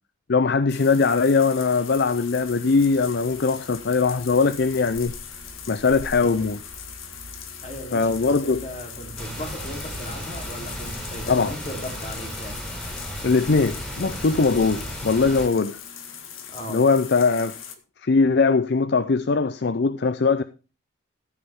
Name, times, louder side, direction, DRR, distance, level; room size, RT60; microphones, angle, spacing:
voice 1, 0.3-5.1 5.7-6.6 7.9-8.6 11.3-11.5 13.2-15.8 16.7-17.6 18.0-20.4, left 4 dB, 55° left, 0.6 m, -21 dB
sound 1, 0.7-17.8, left 7 dB, 85° left, 1.9 m, -40 dB
sound 2, 3.5-11.4, right 2 dB, 65° right, 1.3 m, -48 dB
voice 2, 7.6-12.6 16.5-16.8, equal, 35° left, 3.5 m, -37 dB
sound 3, 9.2-15.5, equal, 5° left, 4.2 m, -35 dB
14.5 x 8.7 x 3.6 m
head